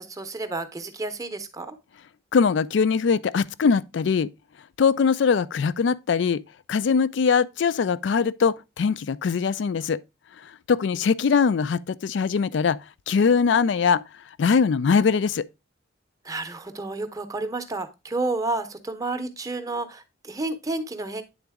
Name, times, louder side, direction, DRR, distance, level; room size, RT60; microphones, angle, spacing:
voice 1, 0.0-1.7 10.8-11.1 16.2-21.2, right 2 dB, 20° right, 0.7 m, -31 dB
voice 2, 2.3-4.3 4.8-6.4 6.7-10.0 10.7-12.8 13.1-14.0 14.4-15.4, left 5 dB, 65° left, 0.4 m, -21 dB
9.3 x 3.9 x 3.5 m
head